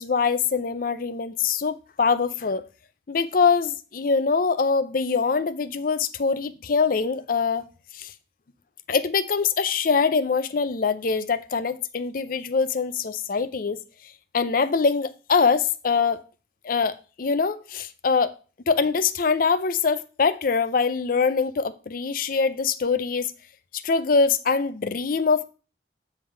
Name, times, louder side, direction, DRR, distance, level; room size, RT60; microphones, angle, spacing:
voice 1, 0.0-2.6 3.1-7.6 7.9-8.1 8.9-13.8 14.3-16.2 16.6-18.3 18.7-23.3 23.7-25.5, left 5 dB, 50° left, 0.5 m, -23 dB
7.4 x 3.4 x 5.7 m
head